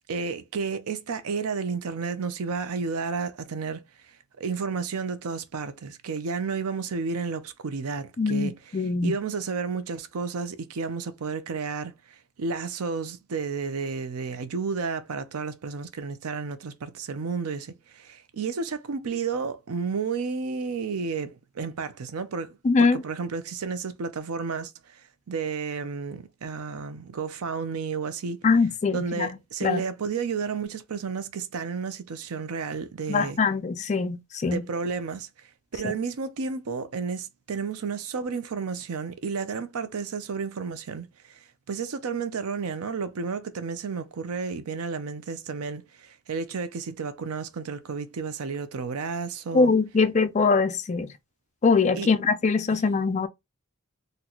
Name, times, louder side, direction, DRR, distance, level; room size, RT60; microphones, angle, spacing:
voice 1, 0.1-3.8 4.4-11.9 12.4-28.4 28.9-33.4 34.5-35.3 35.7-41.4 41.7-49.7 52.0-52.1 52.7-52.8, right 5 dB, 85° right, 0.5 m, -32 dB
voice 2, 8.2-9.1 22.6-23.0 28.4-29.3 29.6-29.8 33.1-34.6 35.8-35.9 49.5-51.1 51.6-53.3, left 4 dB, 30° left, 0.4 m, -22 dB
3.9 x 2.2 x 2.9 m
head